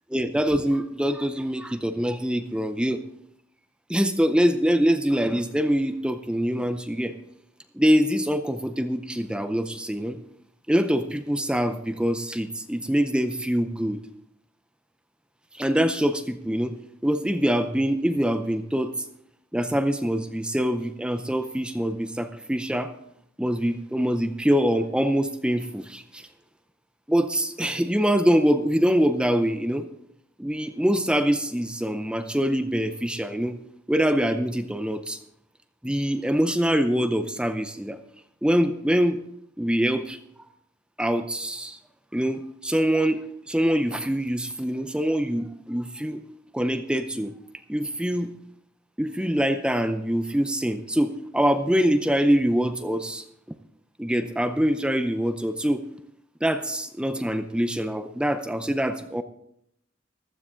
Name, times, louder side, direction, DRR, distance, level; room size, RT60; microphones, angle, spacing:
voice 1, 0.1-3.0 3.9-7.1 7.7-10.2 10.7-14.0 15.5-16.8 17.0-18.9 19.5-22.9 23.4-26.3 27.1-29.9 30.4-33.6 33.9-35.2 35.8-38.0 38.4-39.2 39.6-40.2 41.0-41.8 42.1-43.2 43.5-46.2 46.5-47.3 47.7-48.3 49.0-53.2 54.0-55.8 56.4-59.2, equal, 5° right, 9 dB, 0.5 m, -24 dB
15.0 x 12.5 x 3.8 m, 0.72 s
head